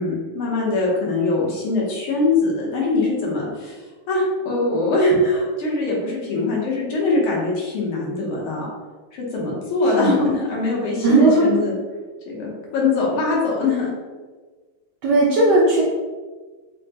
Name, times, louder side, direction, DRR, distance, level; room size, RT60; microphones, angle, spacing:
voice 1, 0.0-3.8 4.1-8.7 9.1-11.8 12.3-13.9, left 2 dB, 80° left, -4 dB, 1.9 m, -22 dB
voice 2, 11.0-11.4 15.0-15.8, right 2 dB, 70° right, -4 dB, 1.1 m, -16 dB
5.5 x 2.1 x 2.8 m, 1.4 s
omnidirectional pair, 2.4 m